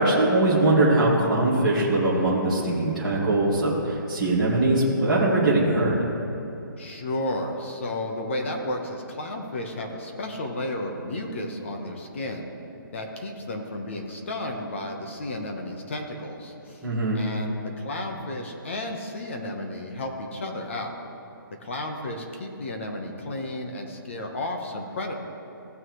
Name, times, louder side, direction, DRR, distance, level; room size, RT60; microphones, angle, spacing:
voice 1, 0.0-6.0 16.8-17.2, right 2 dB, ahead, -15 dB, 1.8 m, -21 dB
voice 2, 6.8-12.5 12.9-16.9 17.1-20.9 21.6-25.1, left 1 dB, 35° left, 2 dB, 1.0 m, -33 dB
16.5 x 6.4 x 3.1 m, 2.8 s
hypercardioid pair, 175°, 12 cm